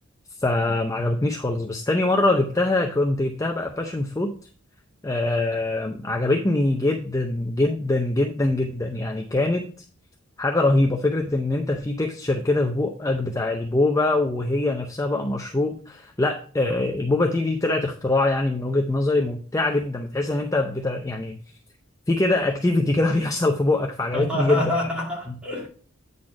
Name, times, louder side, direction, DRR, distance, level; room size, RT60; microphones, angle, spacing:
voice 1, 0.4-4.3 5.0-9.7 10.4-21.4 22.1-24.6, left 2 dB, 15° left, 0.5 m, -23 dB
voice 2, 24.1-25.7, left 1 dB, 5° right, 2.3 m, -27 dB
8.9 x 4.1 x 4.8 m
head